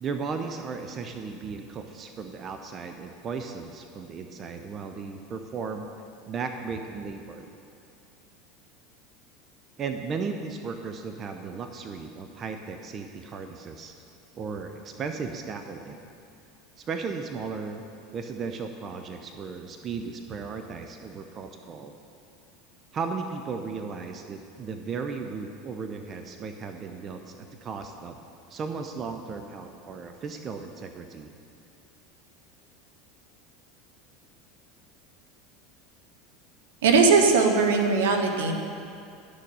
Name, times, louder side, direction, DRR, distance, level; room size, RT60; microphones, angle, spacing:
voice 1, 0.0-5.9 6.3-7.5 9.8-13.9 14.4-16.0 16.8-17.8 18.1-21.9 22.9-28.2 28.5-31.3, right 5 dB, 40° right, 6 dB, 0.7 m, -35 dB
voice 2, 36.8-38.5, right 4 dB, 75° right, 4 dB, 1.0 m, -20 dB
11.5 x 6.6 x 5.5 m, 2.5 s
hypercardioid pair, 85°, 0 cm